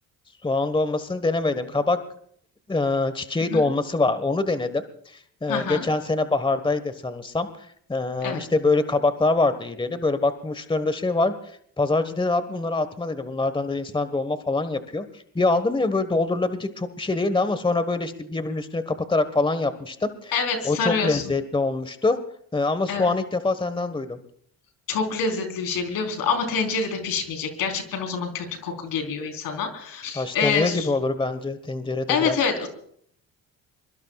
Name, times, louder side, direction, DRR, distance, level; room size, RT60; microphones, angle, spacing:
voice 1, 0.4-2.0 2.7-11.3 11.8-20.3 20.6-22.2 22.5-24.2 30.1-32.4, left 3 dB, 15° left, 11 dB, 1.5 m, -24 dB
voice 2, 5.5-5.8 8.2-8.4 20.3-21.2 22.9-23.1 24.9-30.9 32.1-32.7, left 5 dB, 75° left, 5 dB, 4.3 m, -26 dB
24.5 x 22.5 x 2.4 m, 0.63 s
supercardioid pair, 75°, 34 cm